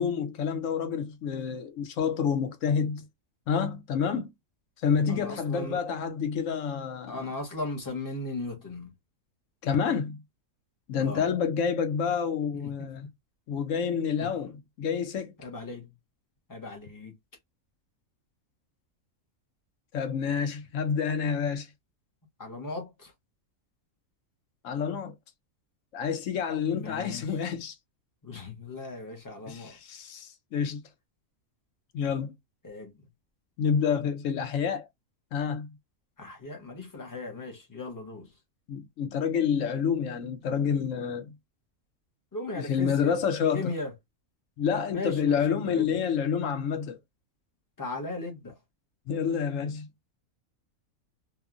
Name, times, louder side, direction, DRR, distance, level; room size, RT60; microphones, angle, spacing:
voice 1, 0.0-3.1 3.5-4.3 4.8-7.3 9.6-10.2 10.9-13.1 13.5-15.3 19.9-21.7 24.6-25.1 25.9-27.8 29.5-30.8 31.9-32.3 33.6-34.9 35.3-35.7 38.7-41.3 42.6-43.7 44.6-47.0 49.1-49.9, left 7 dB, 70° left, 0.9 m, -28 dB
voice 2, 5.1-5.8 7.1-8.9 11.0-11.3 12.5-12.7 14.2-14.3 15.4-15.9 16.5-17.1 22.4-23.1 26.7-27.3 28.2-29.8 32.6-32.9 36.2-38.3 42.3-43.2 43.5-43.9 44.9-46.0 47.8-48.6, left 2 dB, 20° left, 0.7 m, -37 dB
2.9 x 2.3 x 2.4 m
omnidirectional pair, 1.5 m